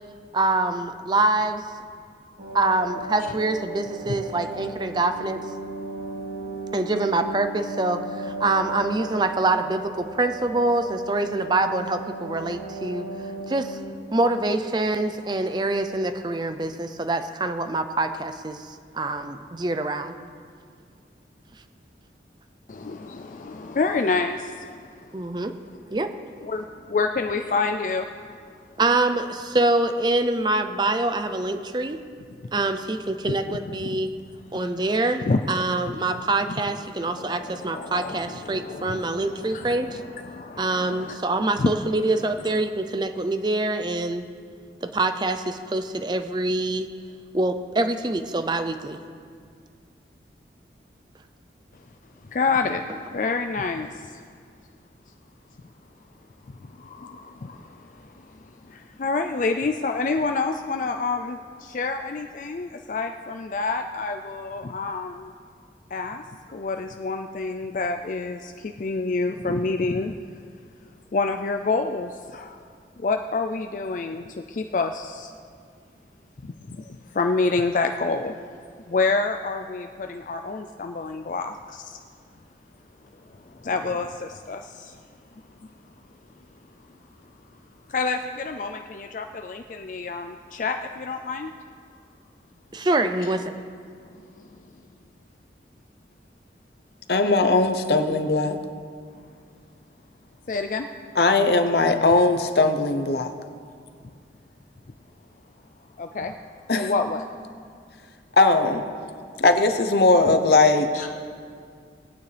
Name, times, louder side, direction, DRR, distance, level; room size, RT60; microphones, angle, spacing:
voice 1, 0.3-1.6 2.5-5.4 6.7-13.1 13.5-13.8 14.1-20.1 25.1-25.5 25.9-26.1 28.8-32.0 32.5-34.1 34.5-40.0 40.6-44.3 44.8-46.9 47.3-49.0 92.7-93.5, right 2 dB, 25° right, 9 dB, 0.5 m, -25 dB
sound 1, 2.4-15.4 15.7-15.8, right 2 dB, 55° right, 3.0 m, -36 dB
voice 2, 22.7-25.2 26.4-28.5 32.4-32.5 33.3-34.0 34.5-34.6 35.2-35.5 35.8-36.0 36.9-41.8 42.4-42.6 52.2-52.8 53.1-54.2 56.6-65.3 65.9-66.2 66.5-70.1 71.1-72.6 73.0-75.3 76.4-78.4 78.9-82.0 83.3-85.0 85.3-85.7 87.9-91.5 93.2-93.3 94.4-94.6 100.5-100.9 106.0-106.4 106.7-107.3 110.3-110.4 110.9-111.1, left 3 dB, 45° left, 5 dB, 0.4 m, -28 dB
voice 3, 97.1-98.6 101.2-103.3 106.7-106.9 108.4-108.8 109.4-110.9, left 3 dB, 60° left, 8 dB, 0.8 m, -19 dB
19.5 x 9.2 x 3.4 m, 2.1 s
head